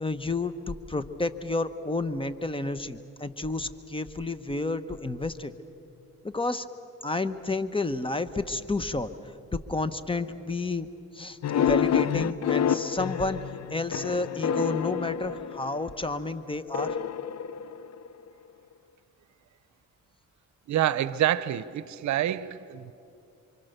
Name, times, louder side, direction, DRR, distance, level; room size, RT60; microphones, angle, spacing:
voice 1, 0.0-5.5 6.2-6.7 7.0-10.9 11.1-13.4 13.7-17.0, left 2 dB, 15° left, 12 dB, 1.1 m, -31 dB
sound 1, 11.4-16.0 16.7-18.3, left 8 dB, 60° left, 0.8 m, -28 dB
voice 2, 20.7-22.9, right 12 dB, 70° right, 16 dB, 0.8 m, -27 dB
28.5 x 25.0 x 6.8 m, 2.7 s
cardioid pair, 90°, 30 cm